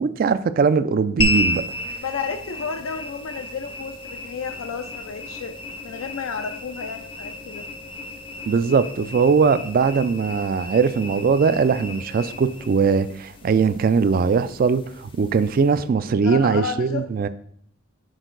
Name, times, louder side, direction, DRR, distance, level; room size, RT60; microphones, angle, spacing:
voice 1, 0.0-1.6 8.5-17.3, right 5 dB, 45° right, 0.3 m, -20 dB
sound 1, 1.2-15.8, left 1 dB, 25° left, 0.5 m, -33 dB
voice 2, 2.0-5.5 5.8-7.7 16.2-17.0, left 5 dB, 80° left, 0.4 m, -31 dB
6.4 x 4.4 x 3.9 m
head